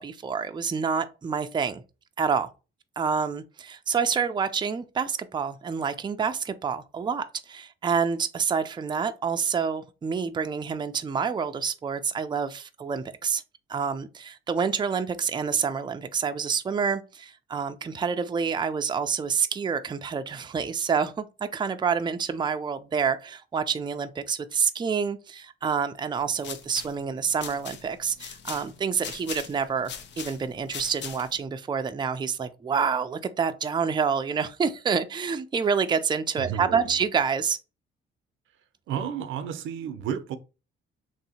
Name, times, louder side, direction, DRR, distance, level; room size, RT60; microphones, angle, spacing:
voice 1, 0.0-1.8 2.2-2.5 3.0-13.4 13.7-29.9 30.2-37.6, right 6 dB, 25° right, 0.4 m, -28 dB
sound 1, 26.2-31.5, left 7 dB, 65° left, 0.7 m, -41 dB
voice 2, 36.4-37.0 38.9-40.4, right 8 dB, 80° right, 0.6 m, -32 dB
3.2 x 2.8 x 4.1 m
cardioid pair, 90°, 20 cm